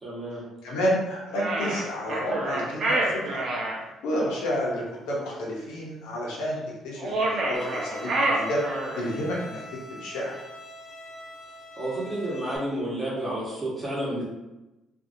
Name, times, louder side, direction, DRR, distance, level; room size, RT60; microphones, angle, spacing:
voice 1, 0.0-0.5 11.7-14.2, right 1 dB, 30° right, -7 dB, 1.3 m, -30 dB
voice 2, 0.6-3.4 4.0-6.6 6.8-8.6 9.0-9.6 9.9-10.3, equal, 85° left, -4 dB, 0.8 m, -30 dB
sound 1, 1.3-3.8 7.0-9.1, right 2 dB, 55° right, 0.6 m, -27 dB
Bowed string instrument, 7.5-12.6, left 1 dB, 20° left, 0.6 m, -43 dB
2.7 x 2.5 x 2.6 m, 1.0 s
supercardioid pair, 70°, 0 cm